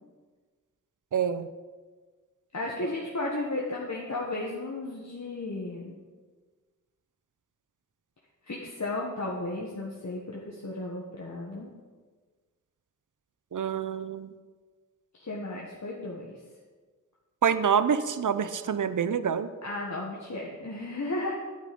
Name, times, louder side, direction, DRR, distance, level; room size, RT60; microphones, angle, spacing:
voice 1, 1.1-1.5 13.5-14.3 17.4-19.5, right 7 dB, 70° right, 12 dB, 0.6 m, -26 dB
voice 2, 2.5-6.0 8.5-11.7 15.1-16.4 19.6-21.3, left 2 dB, 60° left, -3 dB, 1.5 m, -34 dB
10.5 x 8.4 x 5.3 m, 1.4 s
cardioid pair, 45°, 32 cm